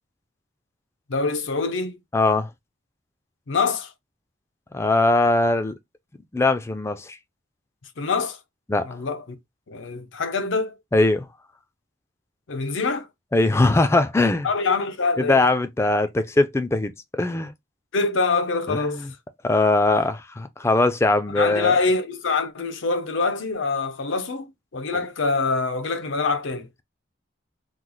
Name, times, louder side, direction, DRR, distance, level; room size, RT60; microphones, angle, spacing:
voice 1, 1.1-2.0 3.5-3.9 8.0-8.4 8.8-9.4 9.7-10.7 12.5-13.1 14.4-15.4 17.9-19.1 21.3-26.7, left 4 dB, 85° left, 0.6 m, -25 dB
voice 2, 2.1-2.5 4.7-5.7 6.3-7.2 8.7-8.9 10.9-11.3 13.3-14.5 15.2-17.5 18.7-19.0 19.4-21.8, left 2 dB, 15° left, 0.3 m, -20 dB
3.1 x 2.0 x 3.7 m
head